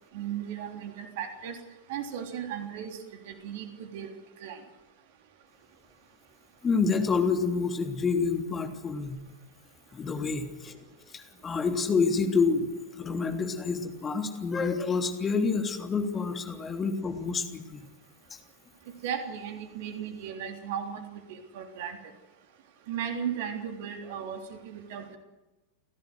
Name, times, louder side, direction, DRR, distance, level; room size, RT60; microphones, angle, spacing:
voice 1, 0.1-1.6 1.9-3.0 3.3-4.1 4.4-4.6 19.0-21.0 21.3-22.0 22.9-25.2, right 8 dB, 50° right, 4 dB, 3.5 m, -36 dB
voice 2, 6.6-9.2 9.9-10.7 11.1-17.8, left 4 dB, 20° left, 4 dB, 3.3 m, -28 dB
29.5 x 17.0 x 6.5 m, 1.1 s
figure-of-eight pair, 90°, 0 cm